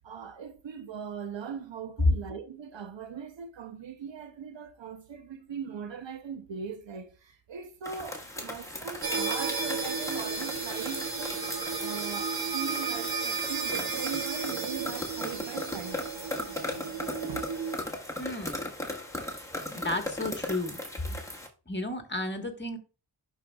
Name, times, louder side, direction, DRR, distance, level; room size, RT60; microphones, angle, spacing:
voice 1, 0.0-11.4 11.8-16.0 17.3-17.5, right 7 dB, 80° right, 0.9 m, -40 dB
sound 1, 7.8-21.5, left 1 dB, 5° left, 1.5 m, -38 dB
sound 2, 9.0-17.8, right 4 dB, 55° right, 1.3 m, -33 dB
voice 2, 18.2-18.7 19.3-20.8 21.7-22.8, left 2 dB, 25° left, 1.5 m, -34 dB
11.0 x 4.6 x 2.4 m
cardioid pair, 50°, 44 cm